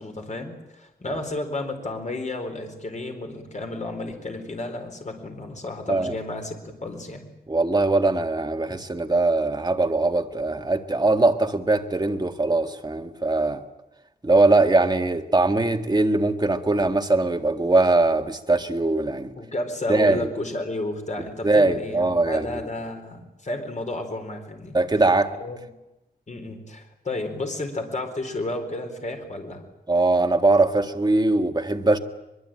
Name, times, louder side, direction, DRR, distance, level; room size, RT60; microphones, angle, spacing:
voice 1, 0.0-7.3 19.4-24.8 25.4-25.6 26.3-29.6, left 2 dB, 45° left, 4.4 m, -32 dB
voice 2, 7.5-13.6 14.2-19.3 19.9-20.3 21.4-22.5 24.7-25.4 29.9-32.0, right 2 dB, 25° right, 1.8 m, -21 dB
23.0 x 23.0 x 9.0 m
wide cardioid pair, 125°, 16 cm